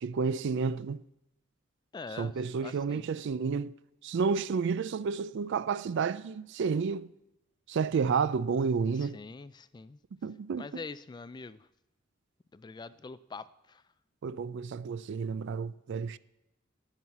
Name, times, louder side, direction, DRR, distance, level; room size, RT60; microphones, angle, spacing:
voice 1, 0.0-1.0 2.2-3.7 4.0-7.1 7.7-9.2 10.2-10.8 14.2-16.2, right 5 dB, 60° right, 0.4 m, -30 dB
voice 2, 1.9-3.1 8.9-10.0 10.6-11.7 12.5-13.8, left 4 dB, 20° left, 0.3 m, -44 dB
12.5 x 5.7 x 8.2 m
head